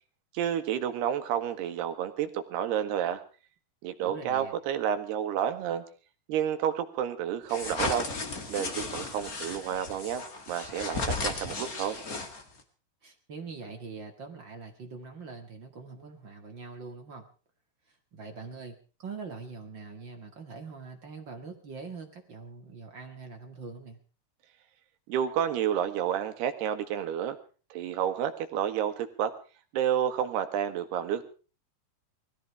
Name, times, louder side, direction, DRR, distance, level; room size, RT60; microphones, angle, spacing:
voice 1, 0.3-3.2 3.8-5.8 6.3-8.1 8.5-12.0 25.1-27.4 27.7-29.3 29.7-31.3, right 9 dB, 75° right, 8 dB, 3.4 m, -30 dB
voice 2, 4.0-4.5 13.0-17.2 17.9-24.0, right 4 dB, 45° right, 4 dB, 1.7 m, -43 dB
sound 1, 7.5-12.6, left 3 dB, 35° left, 1.5 m, -35 dB
20.5 x 15.0 x 4.7 m, 0.38 s
omnidirectional pair, 4.7 m